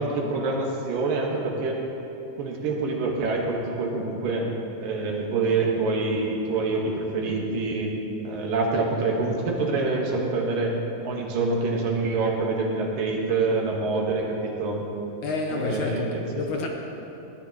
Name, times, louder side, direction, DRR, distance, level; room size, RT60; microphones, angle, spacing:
voice 1, 0.0-1.8 2.4-4.5 4.8-7.9 8.2-10.7 11.0-14.9 15.5-16.5, right 3 dB, 75° right, -1 dB, 3.1 m, -26 dB
voice 2, 15.2-16.1 16.4-16.7, left 4 dB, 70° left, 1 dB, 2.1 m, -28 dB
20.5 x 13.5 x 3.1 m, 3.0 s
omnidirectional pair, 4.1 m